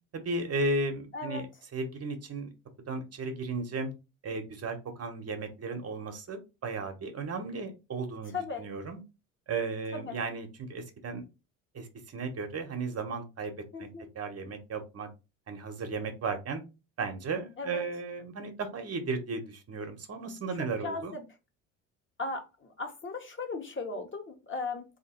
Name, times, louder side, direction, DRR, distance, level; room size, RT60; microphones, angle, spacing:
voice 1, 0.1-1.5 1.7-2.5 2.9-3.9 4.2-9.0 9.5-11.3 11.7-13.9 14.1-15.1 15.5-16.6 17.0-21.2, right 3 dB, 40° right, 6 dB, 1.0 m, -35 dB
voice 2, 8.3-8.6 9.9-10.1 13.7-14.0 17.6-17.8 20.6-21.2 22.2-24.8, left 3 dB, 30° left, 4 dB, 1.5 m, -37 dB
3.3 x 2.8 x 4.3 m, 0.28 s
hypercardioid pair, 65°, 38 cm